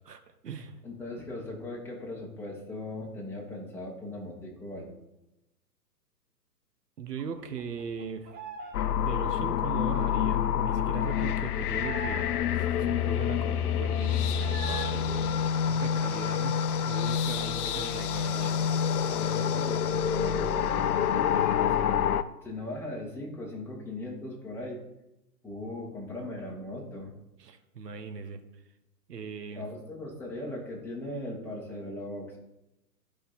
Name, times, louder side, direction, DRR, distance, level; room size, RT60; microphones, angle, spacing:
voice 1, 0.0-0.8 7.0-8.3 8.9-15.4 15.7-16.6 16.8-18.5 27.4-28.4 29.1-29.6, right 6 dB, 75° right, 8 dB, 1.2 m, -39 dB
voice 2, 0.8-4.9 17.3-18.7 19.1-21.8 22.4-24.8 25.4-27.1 29.6-32.4, left 1 dB, 5° left, -4 dB, 2.1 m, -39 dB
sound 1, 7.2-8.8 9.0-12.6 13.0-13.1 13.3-14.9 15.2-16.9 17.3-17.4 17.7-20.1 20.4-20.5 20.8-22.0, right 4 dB, 20° right, 1.3 m, -45 dB
sound 2, 8.7-22.2, left 8 dB, 65° left, 0.7 m, -27 dB
13.0 x 5.4 x 4.4 m, 0.92 s
hypercardioid pair, 130°, 49 cm